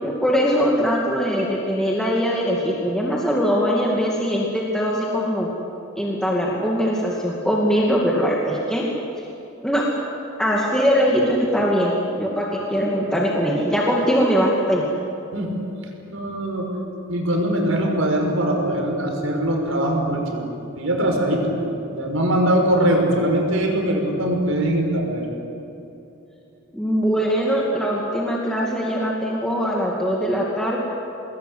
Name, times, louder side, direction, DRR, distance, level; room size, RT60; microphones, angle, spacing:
voice 1, 0.0-5.5 6.0-8.8 9.2-9.3 9.6-9.8 10.4-14.9 26.7-30.8, equal, 5° left, -4 dB, 2.4 m, -21 dB
voice 2, 16.1-16.8 17.1-20.4 20.8-21.6 21.9-25.3, right 1 dB, 85° right, 1 dB, 5.7 m, -21 dB
27.0 x 20.5 x 8.3 m, 2.9 s
head